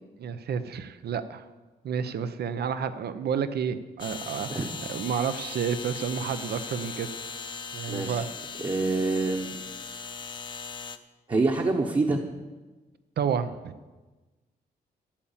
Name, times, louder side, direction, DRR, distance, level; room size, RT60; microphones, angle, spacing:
voice 1, 0.2-1.4 1.8-4.5 4.9-7.1 7.7-8.3 13.2-13.7, right 7 dB, 75° right, 12 dB, 0.8 m, -30 dB
sound 1, 4.0-11.0, left 6 dB, 30° left, 0.7 m, -38 dB
voice 2, 7.9-8.2 8.6-9.5 11.3-12.2, right 3 dB, 30° right, 1 dB, 1.1 m, -26 dB
13.0 x 8.7 x 7.3 m, 1.2 s
wide cardioid pair, 135°, 17 cm